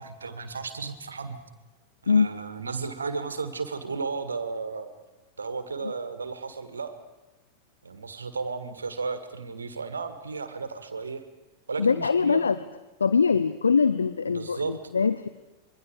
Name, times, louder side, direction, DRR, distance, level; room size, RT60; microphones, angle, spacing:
voice 1, 0.0-1.4 2.0-4.9 5.4-7.0 7.8-11.2 11.7-12.4 14.3-14.8, right 4 dB, 75° right, 10 dB, 1.8 m, -34 dB
voice 2, 11.8-12.6 13.0-15.3, left 5 dB, 75° left, 13 dB, 0.6 m, -22 dB
26.0 x 22.5 x 4.9 m, 1.1 s
figure-of-eight pair, 90°, 0 cm